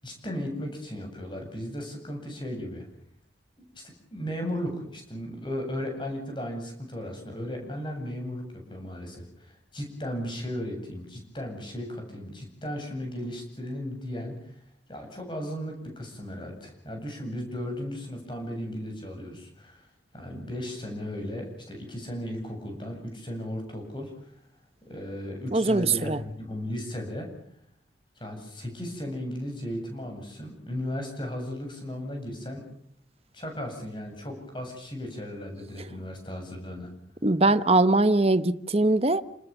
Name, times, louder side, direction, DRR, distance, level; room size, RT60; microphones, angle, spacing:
voice 1, 0.0-2.8 3.7-14.6 14.9-19.9 20.1-24.3 24.9-27.3 28.2-32.6 33.3-36.9, equal, 25° left, 8.0 m, -36 dB
voice 2, 25.5-26.2 37.2-39.2, right 2 dB, 35° right, 1.0 m, -21 dB
29.5 x 20.0 x 7.1 m
head